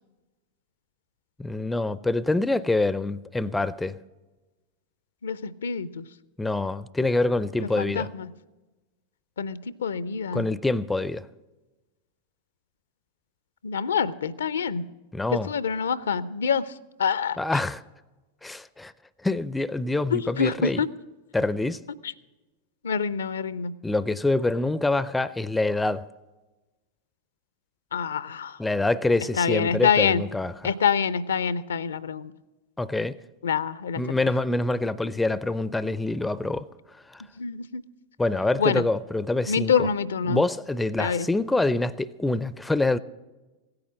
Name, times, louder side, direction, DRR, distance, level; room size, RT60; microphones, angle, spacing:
voice 1, 1.4-4.0 6.4-8.1 10.3-11.3 15.1-15.5 17.4-17.8 18.4-18.9 19.2-20.8 21.3-21.8 23.8-26.1 28.6-30.7 32.8-33.2 34.0-36.7 37.1-37.2 38.2-39.9 40.2-43.0, left 2 dB, 5° left, 0.4 m, -25 dB
voice 2, 5.2-6.1 7.6-8.3 9.4-10.5 13.6-14.8 15.4-16.7 17.0-17.4 20.1-20.9 22.8-23.7 27.9-28.6 29.4-30.2 30.6-32.3 33.4-34.0 37.4-37.8 38.6-38.8 39.5-40.4 41.0-41.3, left 6 dB, 65° left, 0.5 m, -26 dB
16.5 x 9.7 x 6.1 m
figure-of-eight pair, 90°, 0 cm